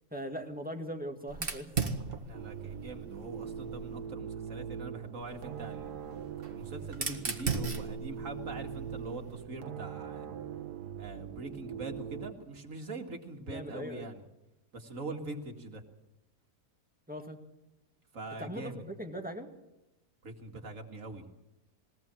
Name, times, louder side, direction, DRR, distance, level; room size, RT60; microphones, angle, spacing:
voice 1, 0.1-1.7 13.5-14.1 17.1-17.4 18.4-19.5, equal, 5° right, 4 dB, 1.9 m, -40 dB
Fire, 1.3-4.0 5.2-9.4, right 4 dB, 35° right, 1.9 m, -38 dB
voice 2, 2.2-5.9 6.5-10.3 11.0-14.2 14.7-15.8 18.1-18.8 20.2-21.2, right 2 dB, 55° right, 4 dB, 2.4 m, -43 dB
sound 1, 2.3-12.3, right 8 dB, 80° right, 1.6 m, -42 dB
21.5 x 18.0 x 7.6 m, 0.93 s
omnidirectional pair, 1.7 m